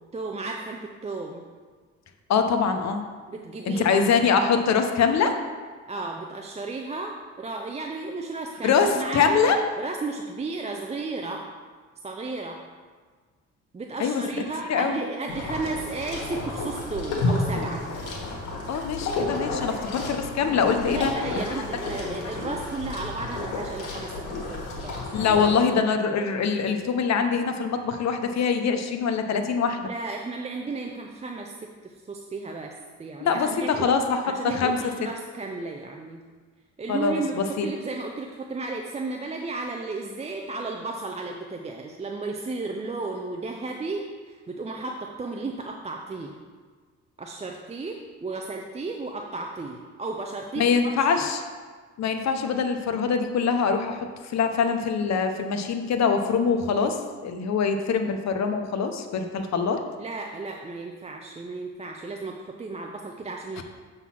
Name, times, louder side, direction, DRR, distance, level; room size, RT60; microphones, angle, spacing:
voice 1, 0.1-1.4 3.3-4.1 5.9-9.5 9.8-11.5 12.0-12.6 13.7-17.9 19.5-19.7 20.8-25.1 29.8-32.7 33.0-33.9 34.2-36.2 36.8-46.4 47.2-51.3 60.0-63.6, right 3 dB, 20° right, 2 dB, 0.5 m, -34 dB
voice 2, 2.3-3.0 3.7-5.3 8.6-9.6 14.0-14.4 14.7-15.0 18.7-21.4 25.1-29.9 33.2-34.8 36.9-37.7 50.6-51.4 52.0-59.8 63.6-63.7, left 5 dB, 60° left, 6 dB, 0.8 m, -24 dB
sound 1, 15.3-25.5, left 2 dB, 85° left, 1.6 m, -31 dB
7.2 x 3.9 x 5.8 m, 1.5 s
cardioid pair, 90°, 30 cm